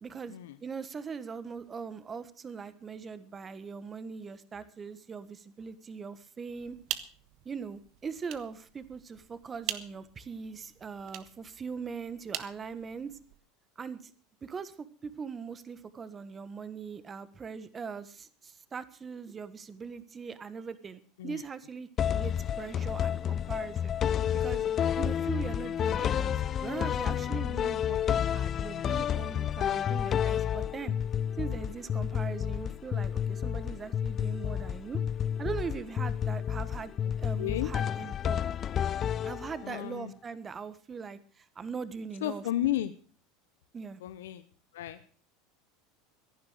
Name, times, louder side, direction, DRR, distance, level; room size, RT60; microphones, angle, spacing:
voice 1, 0.0-0.3 0.6-6.8 7.4-13.1 13.8-14.1 14.4-23.9 24.3-24.6 25.0-31.0 31.4-35.0 35.4-36.9 37.2-38.4 39.2-42.4 43.7-44.0, right 5 dB, 25° right, 14 dB, 1.5 m, -41 dB
sound 1, 6.6-13.4, right 13 dB, 55° right, 1.4 m, -43 dB
sound 2, 22.0-39.8, left 9 dB, 35° left, 0.6 m, -30 dB
voice 2, 37.4-37.7 39.6-40.1 42.2-42.9 44.0-44.5 44.7-45.0, left 13 dB, 85° left, 11 dB, 0.9 m, -33 dB
16.0 x 11.0 x 6.4 m, 0.42 s
supercardioid pair, 110°, 0 cm